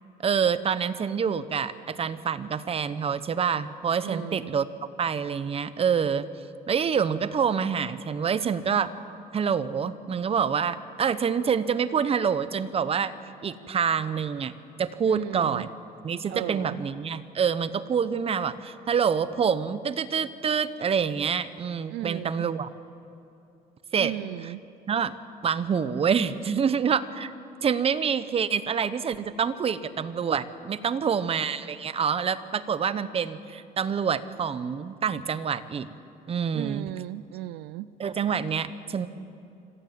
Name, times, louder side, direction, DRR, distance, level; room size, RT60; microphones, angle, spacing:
voice 1, 0.2-4.7 5.0-6.3 6.7-8.9 9.3-13.1 13.4-14.5 14.8-15.7 16.0-22.7 23.9-24.1 24.4-24.5 24.9-25.1 25.4-27.3 27.6-35.9 36.3-36.9 38.0-39.1, right 7 dB, 35° right, 14 dB, 0.9 m, -26 dB
voice 2, 4.0-4.5 15.1-15.7 16.3-16.8 21.9-22.5 24.0-24.6 36.5-37.9, right 15 dB, 85° right, 17 dB, 0.5 m, -35 dB
26.0 x 15.0 x 7.5 m, 2.7 s
cardioid pair, 110°, 17 cm